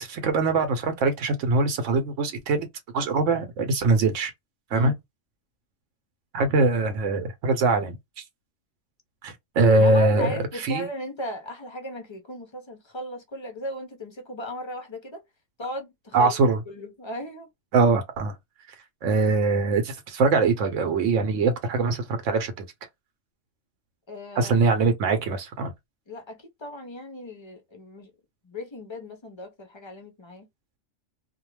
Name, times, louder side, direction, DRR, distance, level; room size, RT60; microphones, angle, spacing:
voice 1, 0.0-2.7 2.9-4.3 4.7-4.9 6.3-8.0 9.2-10.9 16.1-16.6 17.7-18.3 19.0-22.5 24.4-25.7, right 3 dB, 85° right, 1.0 m, -22 dB
voice 2, 9.8-15.2 15.6-17.5 17.8-17.9 24.1-24.6 26.1-28.1 28.4-30.5, equal, 50° left, 0.3 m, -37 dB
2.3 x 2.1 x 3.0 m
omnidirectional pair, 1.3 m